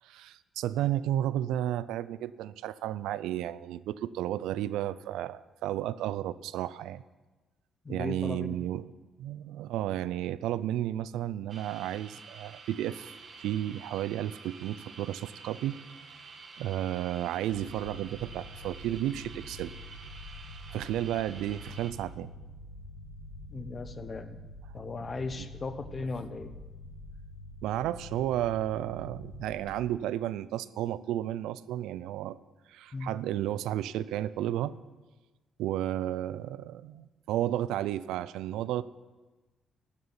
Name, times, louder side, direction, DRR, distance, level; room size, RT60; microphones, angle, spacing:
voice 1, 0.0-7.0 7.9-8.9 9.2-15.8 16.6-19.7 20.7-22.3 25.4-25.5 27.6-32.4 32.7-34.7 35.6-38.8, right 12 dB, 90° right, 17 dB, 0.4 m, -32 dB
voice 2, 7.8-8.6 23.5-24.4 24.7-26.6 32.9-33.1, left 3 dB, 35° left, 10 dB, 1.0 m, -37 dB
sound 1, 11.5-21.9, right 4 dB, 50° right, 1.5 m, -49 dB
sound 2, 17.5-29.6, left 1 dB, 85° left, 2.6 m, -46 dB
12.5 x 6.8 x 8.9 m, 1.2 s
cardioid pair, 90°, 0 cm